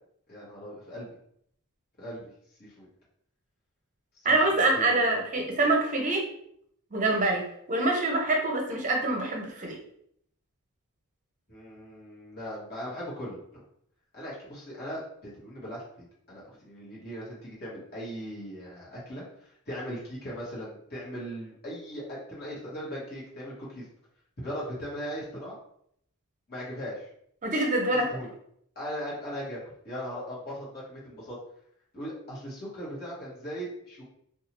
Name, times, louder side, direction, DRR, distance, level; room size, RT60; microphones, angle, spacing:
voice 1, 0.3-1.1 2.0-2.3 2.6-2.9 4.2-5.1 11.5-13.6 14.1-23.8 24.4-25.6 26.5-27.1 27.9-28.3 28.7-29.6 29.8-31.4 31.9-34.0, equal, 45° left, -7 dB, 1.2 m, -39 dB
voice 2, 4.2-6.2 6.9-9.8 27.4-28.1, right 2 dB, 35° right, 1 dB, 0.6 m, -25 dB
2.6 x 2.3 x 2.9 m, 0.70 s
head